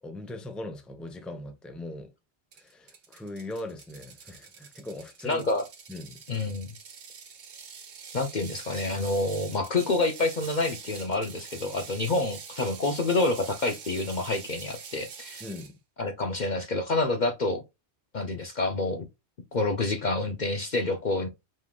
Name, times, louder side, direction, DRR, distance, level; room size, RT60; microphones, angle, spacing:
voice 1, 0.0-2.1 2.5-5.5 5.9-6.2 15.4-15.7, left 1 dB, ahead, 0.6 m, -40 dB
Ratchet pawl, 2.5-15.7, right 6 dB, 75° right, 1.2 m, -45 dB
voice 2, 5.2-5.7 6.3-6.7 8.1-15.4 16.0-17.6 18.1-19.1 19.5-21.3, left 2 dB, 50° left, 0.7 m, -28 dB
5.2 x 3.6 x 2.3 m
omnidirectional pair, 1.1 m